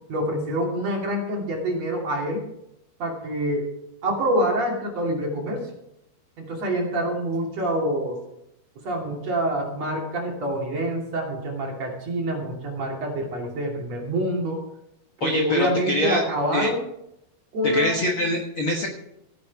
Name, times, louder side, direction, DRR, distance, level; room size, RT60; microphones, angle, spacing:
voice 1, 0.1-2.4 3.0-3.7 4.0-5.6 6.4-8.2 8.8-14.6 15.2-16.8 17.5-18.0, right 1 dB, 45° right, -1 dB, 3.6 m, -26 dB
voice 2, 15.2-16.2 16.5-16.7 17.6-18.9, left 1 dB, 60° left, 2 dB, 1.4 m, -24 dB
15.0 x 9.7 x 4.7 m, 0.80 s
omnidirectional pair, 4.4 m